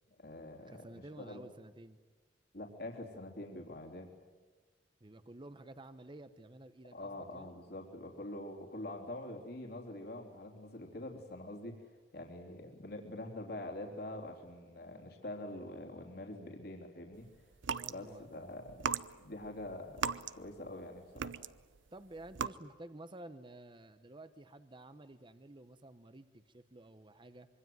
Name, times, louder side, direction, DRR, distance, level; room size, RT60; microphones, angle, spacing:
voice 1, 0.1-0.9 1.2-1.4 2.5-4.1 6.9-17.2 17.9-18.8 19.2-21.4, left 1 dB, 60° left, 1 dB, 3.4 m, -45 dB
voice 2, 0.7-2.0 5.0-7.6 17.7-18.5 21.9-27.5, right 1 dB, 25° right, 11 dB, 0.9 m, -52 dB
sound 1, 17.5-18.0 18.7-20.8 21.2-21.8 22.2-22.5, right 6 dB, 90° right, 0.8 m, -37 dB
25.5 x 24.0 x 9.4 m, 1.3 s
head